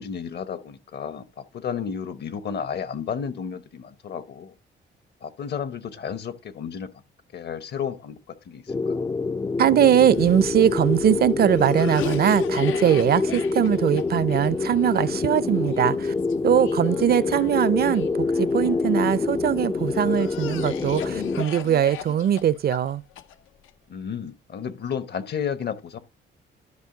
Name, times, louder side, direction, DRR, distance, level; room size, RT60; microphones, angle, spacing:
voice 1, 0.0-4.5 5.2-6.9 7.3-9.0 23.9-26.0, left 7 dB, 55° left, 1.0 m, -32 dB
sound 1, 8.7-21.4, left 3 dB, 20° left, 0.4 m, -26 dB
voice 2, 9.6-16.1 16.4-23.0, right 10 dB, 50° right, 0.5 m, -21 dB
Cough, 10.0-19.2 19.8-23.7, left 9 dB, 85° left, 0.7 m, -39 dB
12.0 x 5.2 x 3.8 m
cardioid pair, 90°, 20 cm